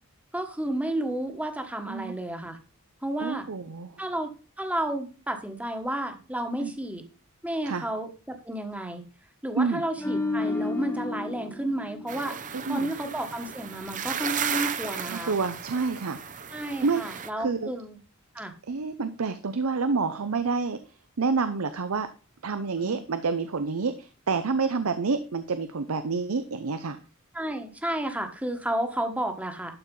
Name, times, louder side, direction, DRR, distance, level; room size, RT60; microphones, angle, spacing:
voice 1, 0.3-2.6 3.0-3.5 4.0-4.3 4.6-7.0 7.4-9.0 9.4-12.3 12.7-15.3 16.5-18.0 18.3-18.5 22.8-23.0 27.3-29.8, right 1 dB, 5° right, 6 dB, 1.2 m, -31 dB
voice 2, 3.2-4.0 6.6-6.7 7.7-7.8 9.6-9.8 12.5-12.9 15.1-16.2 16.8-17.0 17.4-17.7 18.7-20.8 21.2-22.1 22.4-27.0, right 4 dB, 85° right, 11 dB, 0.7 m, -28 dB
sound 1, 10.0-13.2 13.6-13.8, left 2 dB, 10° left, 0.9 m, -32 dB
sound 2, 12.1-17.3, right 7 dB, 35° right, 0.6 m, -34 dB
12.0 x 4.5 x 5.3 m, 0.36 s
head